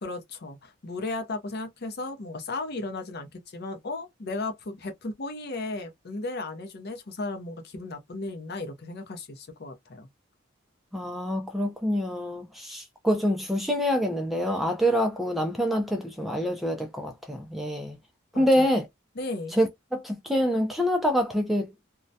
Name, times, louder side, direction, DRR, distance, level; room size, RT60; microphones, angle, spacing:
voice 1, 0.0-10.1 18.3-18.8 19.2-19.6, left 2 dB, 50° left, 0.6 m, -35 dB
voice 2, 10.9-18.0 18.4-18.9 19.5-21.7, equal, ahead, 0.3 m, -26 dB
2.2 x 2.1 x 2.6 m
head